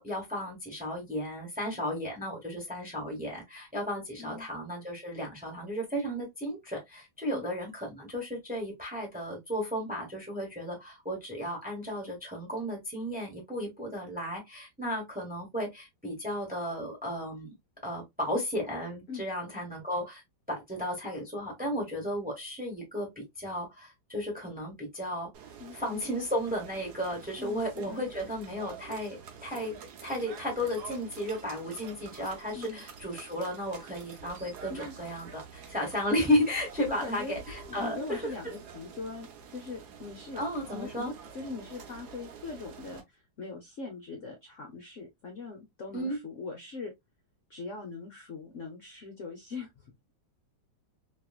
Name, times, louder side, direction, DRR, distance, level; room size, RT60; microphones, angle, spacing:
voice 1, 0.0-17.5 17.8-20.2 20.5-25.3 25.7-38.5 40.3-41.1 45.9-46.2, equal, 5° right, 0.9 m, -34 dB
voice 2, 4.2-4.5 7.3-7.4 19.1-19.3 25.6-25.8 27.4-28.1 32.5-32.8 34.7-35.1 35.6-35.7 36.9-37.4 37.7-40.4 40.7-46.9 47.5-50.1, left 4 dB, 60° left, 0.8 m, -41 dB
sound 1, 25.3-43.0, right 6 dB, 65° right, 1.2 m, -48 dB
3.0 x 2.9 x 2.4 m
omnidirectional pair, 2.1 m